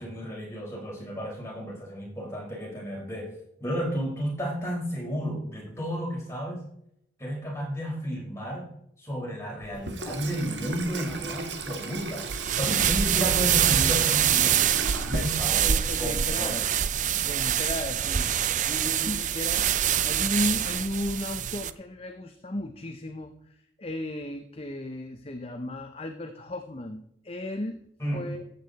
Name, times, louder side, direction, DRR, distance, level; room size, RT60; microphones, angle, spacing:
voice 1, 0.0-3.3 3.6-6.6 7.2-8.6 9.0-12.2 12.6-16.6 28.0-28.2, equal, 15° left, -3 dB, 4.7 m, -32 dB
Water tap faucet / Sink (filling or washing), 9.6-15.9, right 3 dB, 75° right, 1.5 m, -36 dB
sound 1, 12.2-21.7, right 9 dB, 40° right, 0.5 m, -25 dB
voice 2, 15.7-16.7 17.2-18.4 18.6-27.8 28.1-28.4, left 1 dB, 30° left, 7 dB, 0.7 m, -35 dB
14.0 x 8.5 x 4.1 m, 0.76 s
head